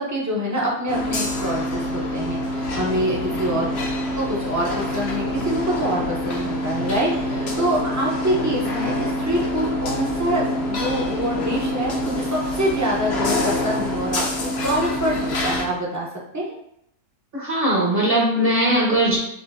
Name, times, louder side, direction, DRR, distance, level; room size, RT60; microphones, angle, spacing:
voice 1, 0.0-3.7 4.1-16.1 16.3-16.5, equal, 15° right, -4 dB, 0.6 m, -25 dB
sound 1, 0.9-15.6, left 1 dB, 50° left, 0.8 m, -26 dB
voice 2, 17.3-19.2, right 1 dB, 40° right, -4 dB, 1.0 m, -20 dB
7.0 x 2.7 x 2.6 m, 0.77 s
omnidirectional pair, 1.7 m